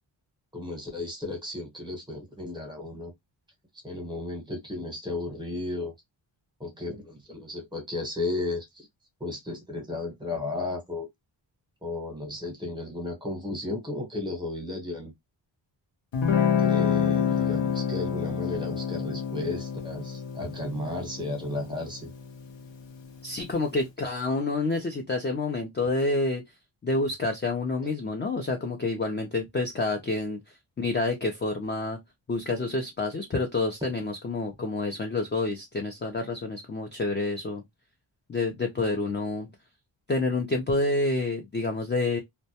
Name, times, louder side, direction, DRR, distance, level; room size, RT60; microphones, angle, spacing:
voice 1, 0.5-3.1 3.8-5.9 6.6-8.9 9.2-11.1 11.8-15.1 16.6-22.1, left 2 dB, 10° right, 0.8 m, -34 dB
Guitar, 16.1-23.3, left 7 dB, 70° left, 0.6 m, -28 dB
voice 2, 23.2-26.4 26.8-30.4 30.8-32.0 32.3-37.6 38.3-39.5 40.1-42.2, left 2 dB, 25° left, 0.4 m, -28 dB
2.1 x 2.1 x 2.7 m
wide cardioid pair, 135°, 46 cm